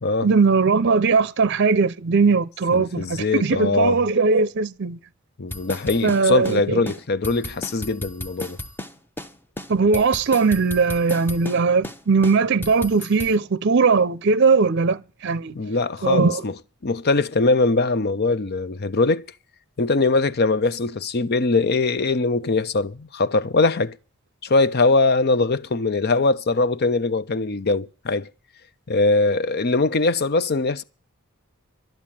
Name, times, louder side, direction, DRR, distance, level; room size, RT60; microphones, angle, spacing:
voice 1, 0.2-5.0 6.0-6.9 9.7-15.5 16.0-16.4, right 4 dB, 55° right, 0.6 m, -19 dB
voice 2, 2.7-4.0 5.4-8.6 15.5-16.5 16.8-19.2 19.8-24.0 24.4-28.3 28.9-30.8, left 3 dB, 50° left, 0.7 m, -21 dB
sound 1, 5.5-6.6 6.9-7.0 7.2-8.9 9.2-9.3 9.6-11.6 11.8-12.0 12.2-13.3, left 1 dB, 10° left, 0.8 m, -34 dB
12.0 x 10.5 x 7.5 m
head